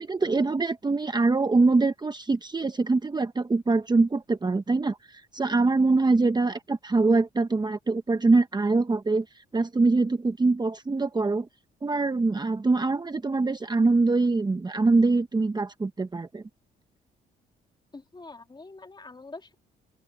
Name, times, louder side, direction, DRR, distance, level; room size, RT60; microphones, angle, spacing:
voice 1, 0.0-9.2 9.5-11.5 11.8-16.4, right 3 dB, 20° right, 1.0 m, -24 dB
voice 2, 17.9-19.5, left 3 dB, 20° left, 2.7 m, -44 dB
open air
cardioid pair, 90°, 20 cm